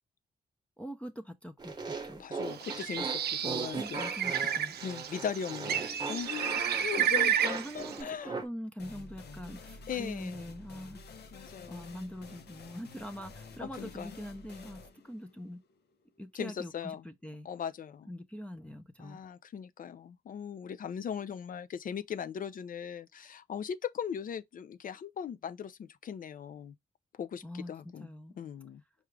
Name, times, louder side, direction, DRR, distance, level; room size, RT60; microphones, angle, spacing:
voice 1, 0.8-2.2 3.8-4.8 7.1-11.4 11.7-15.6 16.2-17.5 18.1-19.2 27.4-27.7 28.0-28.4, equal, 5° left, 0.6 m, -43 dB
sound 1, 1.6-8.4, right 4 dB, 25° right, 1.0 m, -39 dB
voice 2, 2.2-4.0 4.8-5.8 6.1-8.4 9.9-10.4 11.3-11.9 13.6-14.1 16.3-17.0 17.4-18.1 19.0-26.7 27.1-28.1 28.4-28.8, left 8 dB, 55° left, 0.4 m, -39 dB
Bird, 2.5-8.0, right 9 dB, 70° right, 0.5 m, -32 dB
sound 2, 8.8-16.3, left 3 dB, 75° left, 0.8 m, -50 dB
4.7 x 2.4 x 3.1 m
cardioid pair, 75°, 17 cm